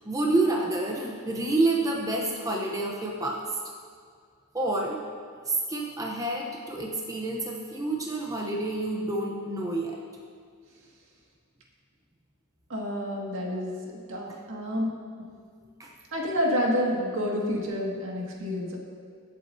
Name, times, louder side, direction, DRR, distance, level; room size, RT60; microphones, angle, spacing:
voice 1, 0.1-3.4 4.5-5.0 5.5-10.0 15.8-15.9, right 2 dB, 15° right, -1 dB, 0.8 m, -28 dB
voice 2, 12.7-13.7 14.1-14.9 16.1-18.8, equal, 65° right, -2 dB, 1.9 m, -28 dB
21.5 x 7.6 x 2.7 m, 2.2 s
head